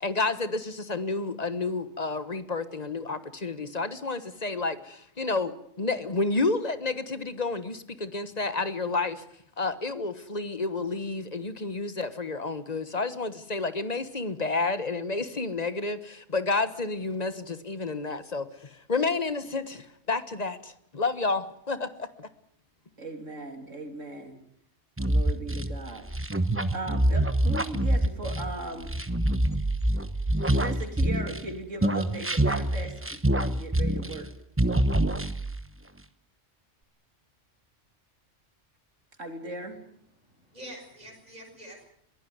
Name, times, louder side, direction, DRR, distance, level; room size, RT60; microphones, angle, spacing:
voice 1, 0.0-9.2 9.6-22.3, left 3 dB, 35° left, 12 dB, 1.3 m, -30 dB
voice 2, 23.0-24.4 25.0-26.1 26.7-28.9 30.5-34.3 39.2-39.8, right 2 dB, 85° right, 5 dB, 3.6 m, -38 dB
sound 1, 25.0-31.5 31.8-34.3 34.6-35.6, right 1 dB, 10° right, 1.0 m, -25 dB
voice 3, 40.2-41.8, right 1 dB, 30° right, 0 dB, 7.2 m, -46 dB
22.5 x 16.5 x 9.5 m, 0.71 s
omnidirectional pair, 1.3 m